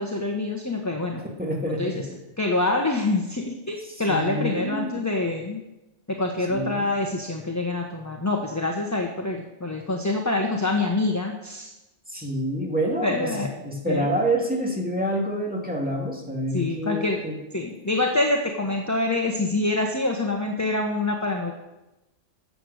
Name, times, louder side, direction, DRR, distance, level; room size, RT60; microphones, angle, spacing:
voice 1, 0.0-1.2 1.8-2.1 2.4-5.6 6.1-11.7 13.0-13.5 13.9-14.1 16.5-17.2 17.5-21.5, left 2 dB, 15° left, 1 dB, 1.1 m, -26 dB
voice 2, 1.4-2.2 3.9-5.1 6.5-6.8 12.1-17.3, right 1 dB, 5° right, -1 dB, 2.3 m, -27 dB
15.0 x 7.8 x 6.5 m, 0.98 s
omnidirectional pair, 1.3 m